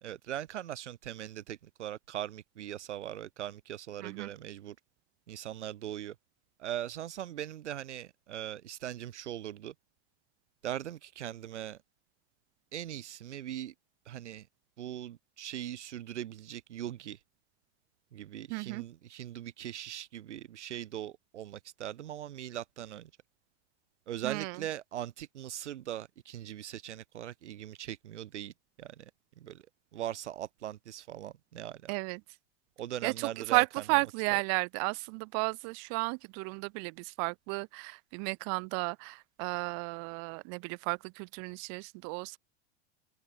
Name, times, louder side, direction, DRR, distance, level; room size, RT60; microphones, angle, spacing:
voice 1, 0.0-4.8 5.3-6.2 6.6-9.7 10.6-11.8 12.7-13.7 14.1-14.5 14.8-17.2 18.1-23.1 24.1-28.5 28.8-29.1 29.4-29.6 29.9-31.9 32.8-33.6 33.9-34.0, right 11 dB, 85° right, 2.1 m, -40 dB
voice 2, 4.0-4.3 18.5-18.8 24.2-24.6 31.9-32.2 33.0-42.4, right 40 dB or more, 50° right, 3.0 m, -33 dB
open air
hypercardioid pair, 120°, 34 cm